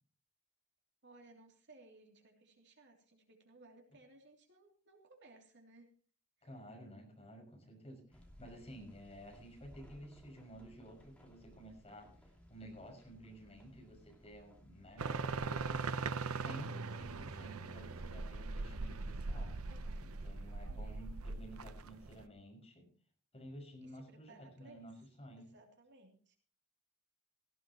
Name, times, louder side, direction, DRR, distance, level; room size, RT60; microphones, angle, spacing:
voice 1, 1.0-5.9 19.7-20.2 20.8-21.1 23.8-24.9 25.3-26.4, right 2 dB, 55° right, 2 dB, 3.0 m, -61 dB
voice 2, 6.4-15.9 16.2-19.5 20.0-22.9 23.3-25.5, equal, 30° left, 1 dB, 6.2 m, -53 dB
sound 1, 8.1-15.1, equal, 5° left, 2.8 m, -61 dB
sound 2, 15.0-22.2, right 3 dB, 80° right, 0.8 m, -40 dB
17.5 x 16.5 x 3.0 m, 0.41 s
head